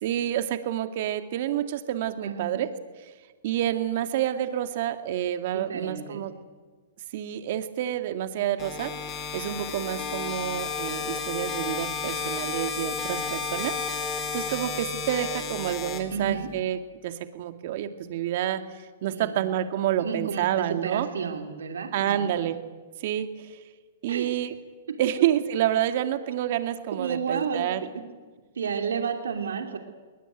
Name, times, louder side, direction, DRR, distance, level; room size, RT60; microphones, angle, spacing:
voice 1, 0.0-2.7 3.4-6.3 7.1-13.8 14.3-21.1 21.9-22.6 23.0-23.6 24.0-24.5 25.0-27.8, right 11 dB, 55° right, 8 dB, 2.2 m, -28 dB
voice 2, 2.2-2.6 5.5-6.2 16.1-16.5 19.1-19.5 20.0-22.4 24.1-24.3 26.9-27.7 28.5-29.8, right 6 dB, 90° right, 5 dB, 2.8 m, -31 dB
sound 1, 8.6-16.6, left 6 dB, 25° left, 4.1 m, -32 dB
21.0 x 20.0 x 9.2 m, 1.4 s
hypercardioid pair, 140°, 0 cm